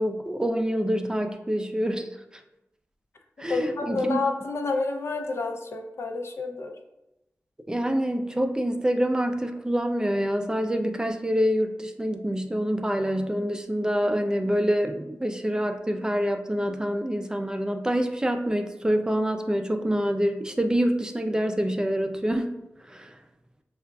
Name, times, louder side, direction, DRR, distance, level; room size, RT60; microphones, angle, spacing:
voice 1, 0.0-2.1 3.4-4.2 7.7-22.5 22.9-23.1, equal, 15° right, 5 dB, 0.3 m, -26 dB
voice 2, 3.5-6.8, left 3 dB, 65° left, 3 dB, 0.5 m, -29 dB
5.5 x 2.4 x 2.3 m, 0.92 s
wide cardioid pair, 70°, 5 cm